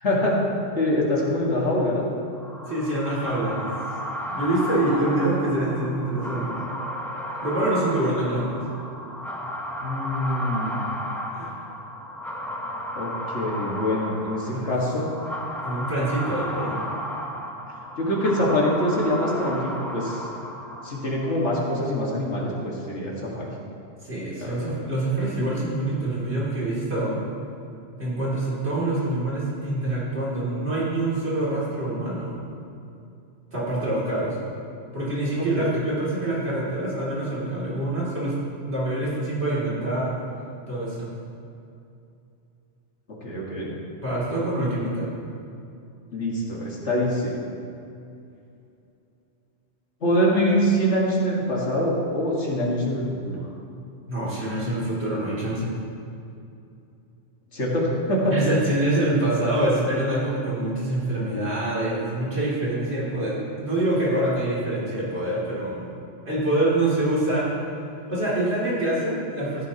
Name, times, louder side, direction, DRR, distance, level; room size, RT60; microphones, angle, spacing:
voice 1, 0.0-0.4 0.8-2.0 9.8-10.9 13.0-15.1 18.0-20.2 20.8-23.5 24.4-24.7 35.4-35.7 43.2-43.7 44.6-44.7 46.1-47.4 50.0-53.5 57.5-58.3, equal, 75° left, -4 dB, 2.1 m, -24 dB
sound 1, 2.4-21.3, equal, ahead, 0.9 m, -34 dB
voice 2, 2.7-3.7 4.3-6.6 7.4-8.6 11.3-11.6 14.5-14.7 15.6-16.8 24.0-27.2 28.0-32.4 33.5-34.3 34.9-38.4 38.6-40.1 40.7-41.1 44.0-45.1 54.1-55.7 58.3-65.9 66.2-67.5 68.1-69.6, right 1 dB, 65° right, -8 dB, 3.0 m, -25 dB
15.5 x 9.8 x 2.9 m, 2.6 s
omnidirectional pair, 1.2 m